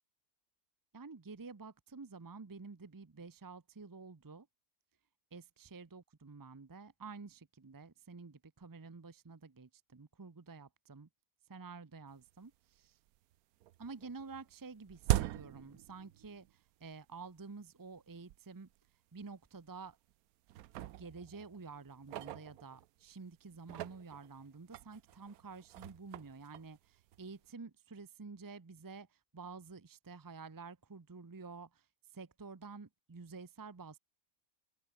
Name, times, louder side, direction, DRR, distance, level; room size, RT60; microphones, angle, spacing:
voice 1, 0.9-4.5 5.3-11.1 11.5-13.0 13.8-18.7 19.1-20.0 20.8-31.9 32.1-34.0, right 4 dB, 30° right, 0.3 m, -50 dB
sound 1, 12.3-12.4 12.8-13.4 13.6-16.5 16.8-16.9 17.7-17.8 18.3-18.4 18.7-18.9 19.6-20.1 20.5-23.1 23.5-27.5, right 14 dB, 90° right, 1.1 m, -41 dB
open air
omnidirectional pair, 1.5 m